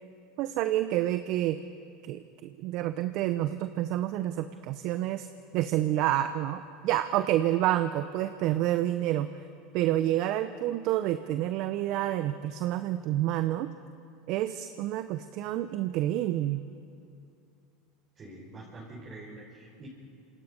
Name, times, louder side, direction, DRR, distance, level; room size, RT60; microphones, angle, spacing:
voice 1, 0.4-1.6 2.0-5.3 5.5-9.3 9.7-13.7 14.3-16.6, right 13 dB, 60° right, 11 dB, 0.8 m, -28 dB
voice 2, 18.2-19.9, right 2 dB, 35° right, -5 dB, 5.4 m, -45 dB
27.0 x 26.0 x 5.4 m, 2.5 s
hypercardioid pair, 95°, 0 cm